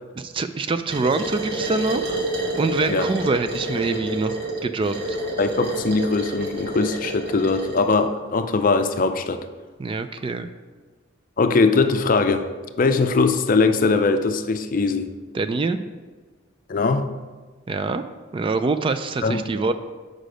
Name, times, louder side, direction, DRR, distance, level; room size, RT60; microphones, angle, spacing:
voice 1, 0.2-2.2 2.5-4.4 4.6-5.2 9.8-10.5 15.3-15.8 17.7-18.0 18.3-19.7, right 3 dB, 30° right, 10 dB, 0.3 m, -25 dB
sound 1, 0.9-8.0, right 1 dB, 65° right, 1.4 m, -29 dB
voice 2, 5.4-9.5 11.4-12.4 12.8-15.1 16.7-17.1 19.2-19.4, left 4 dB, 45° left, 8 dB, 0.5 m, -21 dB
6.6 x 5.1 x 5.1 m, 1.4 s
head